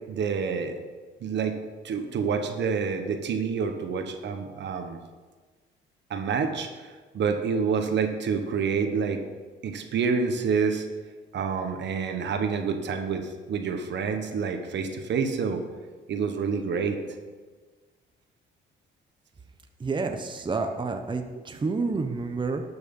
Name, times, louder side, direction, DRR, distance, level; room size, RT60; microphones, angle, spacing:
voice 1, 0.1-0.8 1.2-1.6 1.8-5.0 6.1-9.2 9.6-10.9 11.3-15.6 16.1-17.0, right 5 dB, 65° right, 6 dB, 1.3 m, -28 dB
voice 2, 19.8-22.6, right 4 dB, 25° right, 5 dB, 0.9 m, -29 dB
12.0 x 6.2 x 5.4 m, 1.4 s
cardioid pair, 90°, 20 cm